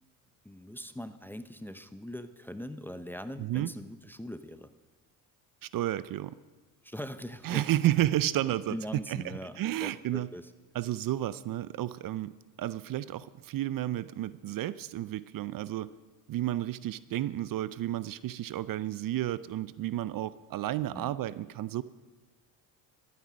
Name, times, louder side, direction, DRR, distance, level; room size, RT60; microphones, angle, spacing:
voice 1, 0.4-4.7 6.8-7.7 8.7-10.5 20.9-21.2, equal, 5° left, 11 dB, 0.6 m, -41 dB
voice 2, 3.4-3.7 5.6-6.4 7.4-8.8 9.1-10.3 10.7-12.3 12.6-15.9 16.3-21.8, right 14 dB, 50° right, 17 dB, 0.5 m, -31 dB
12.5 x 9.5 x 6.2 m, 1.3 s
supercardioid pair, 75°, 43 cm